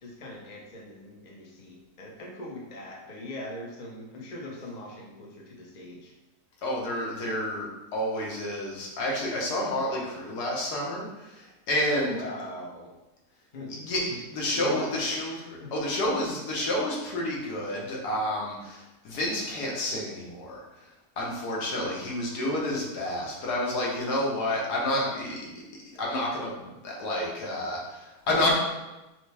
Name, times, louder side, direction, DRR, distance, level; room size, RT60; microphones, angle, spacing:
voice 1, 0.0-6.1 11.9-12.9 13.5-13.8 14.1-14.2 14.5-15.7, left 1 dB, 45° left, -2 dB, 0.6 m, -41 dB
voice 2, 6.6-12.2 13.7-14.0 14.3-15.4 15.7-20.6 21.2-25.5 26.0-28.6, left 1 dB, 70° left, -3 dB, 1.5 m, -29 dB
5.9 x 2.1 x 3.3 m, 1.0 s
omnidirectional pair, 1.8 m